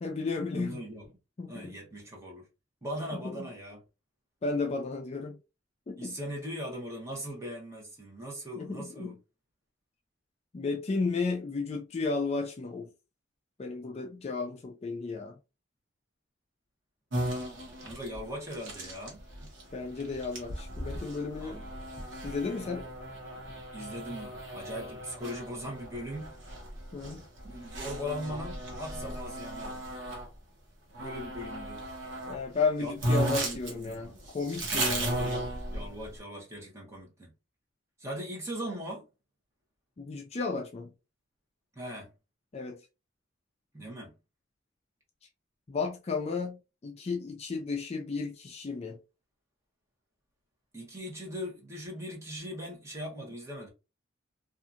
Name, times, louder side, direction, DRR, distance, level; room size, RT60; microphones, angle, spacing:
voice 1, 0.0-0.8 1.4-1.8 3.1-3.5 4.4-5.4 5.9-6.2 8.5-9.2 10.5-12.9 13.6-15.4 19.7-21.6 22.2-22.9 26.9-27.2 32.3-35.4 40.0-40.9 42.5-42.8 45.7-49.0, left 4 dB, 35° left, 0.3 m, -33 dB
voice 2, 0.5-1.0 1.5-2.5 2.8-3.8 6.0-9.1 17.8-19.2 21.4-21.7 23.7-26.4 27.4-29.9 31.0-31.8 32.8-33.0 33.4-34.2 35.0-35.4 35.7-37.3 38.0-39.1 41.7-42.1 43.7-44.1 50.7-53.7, equal, 15° right, 0.9 m, -40 dB
sound 1, 17.1-30.3 30.9-32.4 32.7-32.8 33.0-36.1, right 1 dB, 70° right, 1.1 m, -36 dB
2.8 x 2.4 x 2.4 m
head